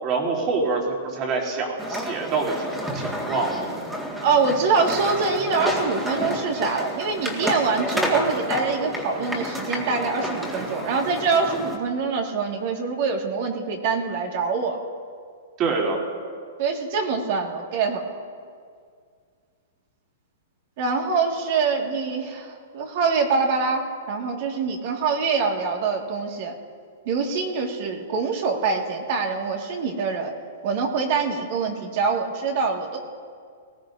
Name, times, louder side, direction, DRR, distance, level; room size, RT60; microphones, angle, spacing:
voice 1, 0.0-3.7 15.6-16.0, right 4 dB, 35° right, -1 dB, 3.1 m, -26 dB
sound 1, 1.8-11.8, equal, 5° right, 1.9 m, -30 dB
voice 2, 4.2-14.8 16.6-18.2 20.8-26.5 27.1-30.3 30.6-33.0, right 4 dB, 50° right, 2 dB, 1.9 m, -24 dB
19.5 x 16.5 x 2.7 m, 2.1 s
hypercardioid pair, 140°, 0 cm